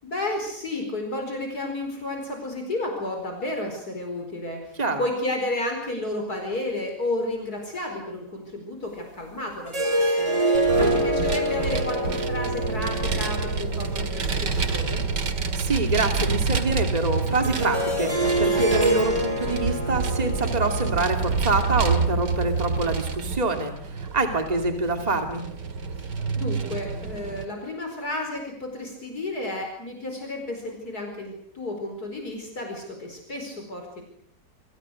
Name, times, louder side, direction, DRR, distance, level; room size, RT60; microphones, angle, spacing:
voice 1, 0.0-15.1 26.0-26.1 26.4-34.0, left 1 dB, 60° left, 3 dB, 5.3 m, -32 dB
sound 1, 9.7-15.6 17.4-22.6, right 1 dB, 40° right, 7.0 m, -27 dB
Vehicle, 10.5-27.5, right 4 dB, 75° right, 2.6 m, -28 dB
voice 2, 15.5-25.4, right 2 dB, 20° right, 5 dB, 2.8 m, -26 dB
28.5 x 26.5 x 6.5 m, 0.64 s
omnidirectional pair, 1.9 m